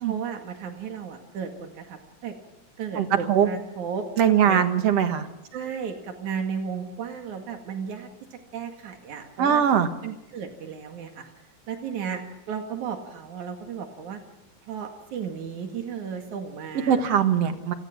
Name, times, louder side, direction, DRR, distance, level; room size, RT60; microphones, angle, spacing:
voice 1, 0.1-2.4 2.8-4.7 5.5-9.6 10.0-11.3 11.7-12.2 12.5-14.2 14.7-17.1, right 7 dB, 85° right, 4 dB, 3.5 m, -34 dB
voice 2, 3.0-3.5 4.2-5.3 9.4-9.9 16.9-17.7, right 8 dB, 60° right, 8 dB, 2.4 m, -21 dB
29.0 x 19.5 x 6.0 m, 0.94 s
omnidirectional pair, 3.3 m